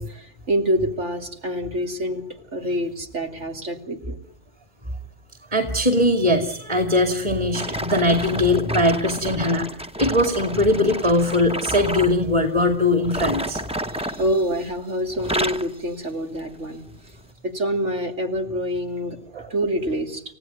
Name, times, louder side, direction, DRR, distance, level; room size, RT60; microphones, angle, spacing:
voice 1, 0.0-2.2 2.5-4.2 14.2-16.8 17.4-19.2 19.5-20.2, equal, 70° right, 4 dB, 3.2 m, -26 dB
voice 2, 5.5-9.7 10.0-13.6 14.0-14.2 19.3-19.5, left 1 dB, 25° right, 7 dB, 2.8 m, -20 dB
sound 1, 7.5-12.2 13.0-14.8 15.1-15.7 16.4-16.6 17.2-17.3, equal, 5° right, 0.8 m, -31 dB
30.0 x 16.0 x 9.4 m, 0.68 s
omnidirectional pair, 1.3 m